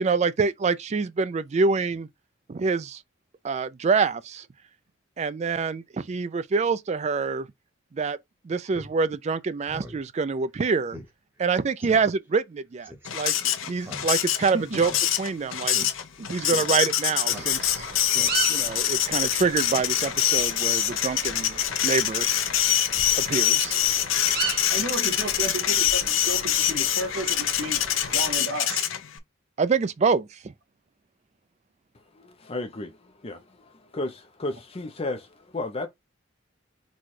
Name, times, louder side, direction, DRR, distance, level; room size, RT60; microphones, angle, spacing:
voice 1, 0.0-2.1 2.5-3.0 3.4-4.5 5.2-7.5 7.9-8.2 8.4-11.0 11.4-14.9 15.2-15.8 16.2-17.9 18.5-21.6 21.8-22.3 23.2-23.8 29.6-30.4, right 4 dB, 35° right, 0.3 m, -26 dB
Speech synthesizer, 8.7-8.9 9.3-9.4 9.7-10.0 10.3-10.4 10.9-11.1 11.4-11.5 11.8-12.1 12.8-13.1 13.8-14.4 14.7-15.3 15.7-15.9 16.5-16.6 17.3-17.8 18.1-18.6, equal, 10° right, 0.9 m, -41 dB
Printer, 13.1-29.2, left 11 dB, 70° left, 0.6 m, -25 dB
sound 1, 17.3-28.4, right 4 dB, 50° right, 1.8 m, -37 dB
voice 2, 24.7-27.8 28.1-28.9, right 1 dB, 85° right, 1.9 m, -32 dB
voice 3, 31.9-35.9, left 2 dB, 30° left, 0.5 m, -34 dB
4.1 x 2.3 x 4.6 m
head